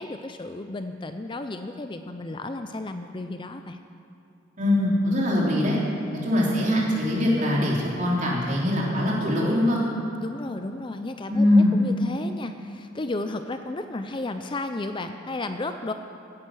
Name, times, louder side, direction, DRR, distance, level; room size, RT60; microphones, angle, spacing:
voice 1, 0.0-3.8 10.2-15.9, left 2 dB, 25° left, 8 dB, 0.5 m, -33 dB
voice 2, 4.6-5.8 6.2-9.8 11.3-11.7, left 1 dB, 40° right, -4 dB, 3.4 m, -22 dB
16.0 x 10.0 x 6.3 m, 2.7 s
head